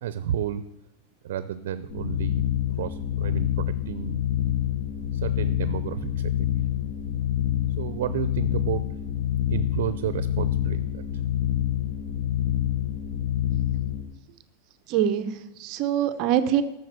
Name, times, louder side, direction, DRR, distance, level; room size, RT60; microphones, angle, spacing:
voice 1, 0.0-0.6 1.2-2.4 2.7-4.2 5.1-6.5 7.8-8.8 9.5-11.0, right 10 dB, 75° right, 13 dB, 0.6 m, -31 dB
sound 1, 1.9-14.0, left 12 dB, 50° left, 1.4 m, -27 dB
voice 2, 14.9-16.6, right 10 dB, 40° right, 10 dB, 0.8 m, -24 dB
12.0 x 6.8 x 8.0 m, 0.90 s
supercardioid pair, 160°, 0 cm